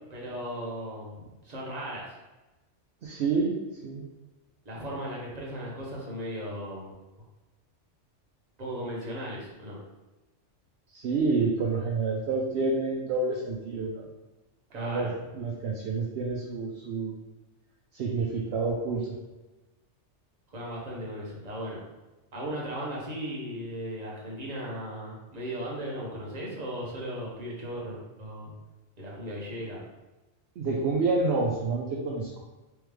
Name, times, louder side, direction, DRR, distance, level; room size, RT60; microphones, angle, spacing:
voice 1, 0.1-2.1 4.6-6.9 8.6-9.8 14.7-15.1 20.5-21.8 22.3-28.5 29.0-29.8, equal, 35° right, -4 dB, 1.1 m, -37 dB
voice 2, 3.0-3.5 3.8-4.0 10.9-14.1 14.7-17.1 17.9-19.2 30.6-32.4, right 3 dB, 65° right, -2 dB, 0.8 m, -28 dB
3.5 x 3.3 x 3.2 m, 1.1 s
omnidirectional pair, 1.2 m